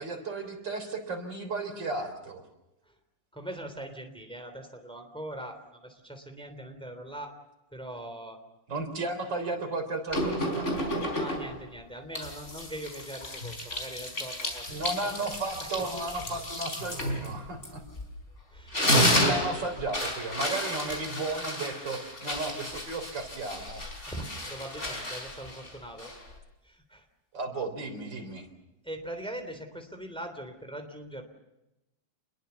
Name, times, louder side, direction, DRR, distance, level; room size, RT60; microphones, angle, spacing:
voice 1, 0.0-2.4 8.7-10.9 14.7-17.8 19.0-23.8 27.3-28.5, right 3 dB, 90° right, 6 dB, 4.4 m, -34 dB
voice 2, 3.3-7.3 7.7-8.4 11.1-14.7 18.5-19.6 24.1-26.1 26.6-27.0 28.8-31.2, right 1 dB, 5° left, 6 dB, 3.3 m, -41 dB
sound 1, 10.1-11.6 12.1-18.2 18.5-26.4, equal, 40° left, 5.2 m, -31 dB
27.5 x 21.5 x 7.0 m, 0.93 s
omnidirectional pair, 1.9 m